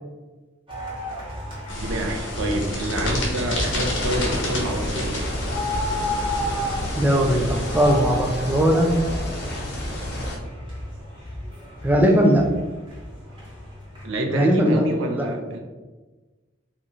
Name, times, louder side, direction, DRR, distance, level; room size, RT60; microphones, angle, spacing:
sound 1, 0.7-14.1, left 1 dB, 25° right, 0.9 m, -33 dB
sound 2, 1.7-7.9, left 1 dB, 75° left, 1.0 m, -30 dB
voice 1, 1.7-5.2 14.0-15.6, right 1 dB, 80° right, 3 dB, 0.6 m, -27 dB
sound 3, 3.6-10.4, left 1 dB, 55° left, 0.7 m, -32 dB
voice 2, 6.9-9.0 11.8-12.5 14.3-14.8 15.2-15.3, equal, 10° right, 2 dB, 0.3 m, -19 dB
2.6 x 2.4 x 4.1 m, 1.2 s
head